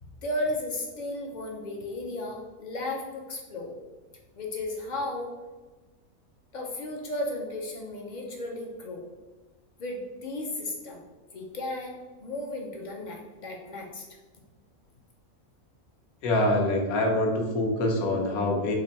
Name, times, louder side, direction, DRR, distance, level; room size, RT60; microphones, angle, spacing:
voice 1, 0.0-3.7 4.3-5.3 6.5-9.0 9.8-11.0 11.3-14.1, left 1 dB, 55° left, 0 dB, 0.5 m, -34 dB
voice 2, 16.2-18.7, left 1 dB, 80° left, 1 dB, 1.3 m, -25 dB
4.2 x 2.6 x 4.0 m, 1.2 s
omnidirectional pair, 1.5 m